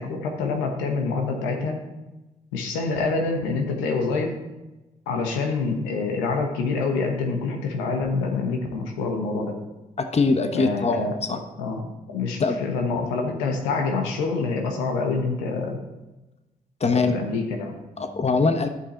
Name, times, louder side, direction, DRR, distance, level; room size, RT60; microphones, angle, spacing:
voice 1, 0.0-1.8 2.5-4.3 5.1-9.6 10.5-11.8 12.1-15.8 16.9-17.8, left 4 dB, 85° left, 2 dB, 1.2 m, -26 dB
voice 2, 10.0-11.4 12.4-12.6 16.8-17.2 18.0-18.7, left 4 dB, 35° left, 8 dB, 1.0 m, -22 dB
11.0 x 5.8 x 3.9 m, 1.0 s
hypercardioid pair, 40°, 18 cm